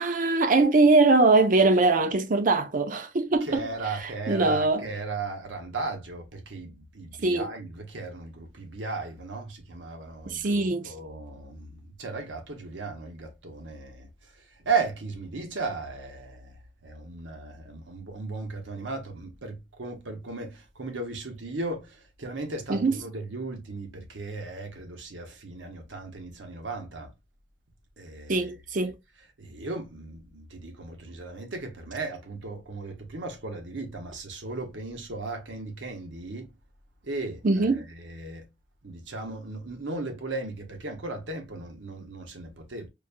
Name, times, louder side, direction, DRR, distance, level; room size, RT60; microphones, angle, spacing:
voice 1, 0.0-3.6 4.3-4.9 7.2-7.5 10.3-10.9 22.7-22.9 28.3-29.0 37.4-37.8, right 3 dB, 45° right, 0.5 m, -22 dB
voice 2, 3.4-27.1 28.0-28.5 28.8-28.9 29.4-36.5 37.0-38.5 38.8-42.9, right 3 dB, 90° right, 1.0 m, -36 dB
5.1 x 2.2 x 2.5 m
head